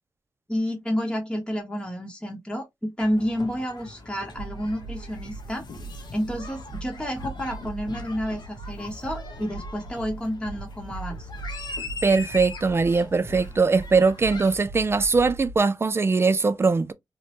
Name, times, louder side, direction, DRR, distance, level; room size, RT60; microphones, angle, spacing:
voice 1, 0.5-5.6 6.1-11.3, equal, 10° left, 0.9 m, -30 dB
sound 1, 3.0-14.6, left 3 dB, 80° left, 0.7 m, -41 dB
sound 2, 4.3-15.6, right 3 dB, 65° right, 0.7 m, -40 dB
voice 2, 12.0-16.9, right 4 dB, 35° right, 0.3 m, -21 dB
3.0 x 2.1 x 2.9 m
cardioid pair, 70°, 7 cm